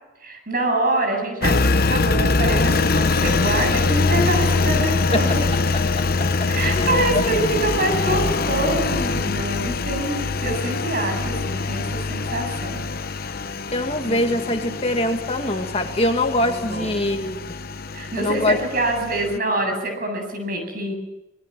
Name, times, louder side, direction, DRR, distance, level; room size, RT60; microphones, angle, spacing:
voice 1, 0.2-5.4 6.5-12.8 14.0-14.8 16.4-17.3 17.9-20.9, right 2 dB, 50° right, 5 dB, 7.8 m, -26 dB
Engine, 1.4-19.4, left 3 dB, 50° left, 0.9 m, -23 dB
voice 2, 6.4-7.2 13.7-17.4 18.2-18.6, left 1 dB, 30° left, 4 dB, 2.0 m, -23 dB
26.5 x 21.0 x 7.5 m, 0.94 s
head